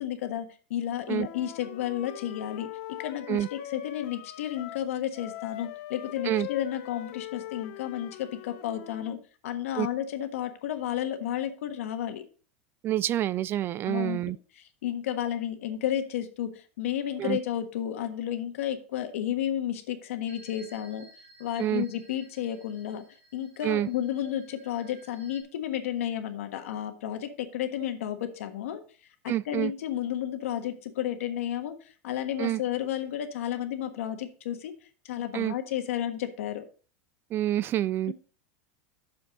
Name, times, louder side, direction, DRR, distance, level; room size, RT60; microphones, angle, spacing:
voice 1, 0.0-2.7 3.0-9.2 9.4-12.2 13.9-14.2 14.8-21.1 21.4-23.0 23.3-28.8 29.4-31.8 32.0-34.7 35.0-36.6 38.1-38.2, left 11 dB, 90° left, 1.4 m, -32 dB
Wind instrument woodwind instrument, 1.1-4.9 5.1-9.2, left 15 dB, 65° left, 0.8 m, -41 dB
voice 2, 12.8-14.4 17.2-17.4 21.6-21.9 23.6-23.9 29.3-29.7 32.4-32.6 35.3-35.5 37.3-38.1, right 13 dB, 30° right, 0.3 m, -27 dB
sound 1, 20.3-25.4, right 1 dB, 75° right, 3.9 m, -55 dB
8.5 x 7.0 x 3.8 m
supercardioid pair, 140°, 7 cm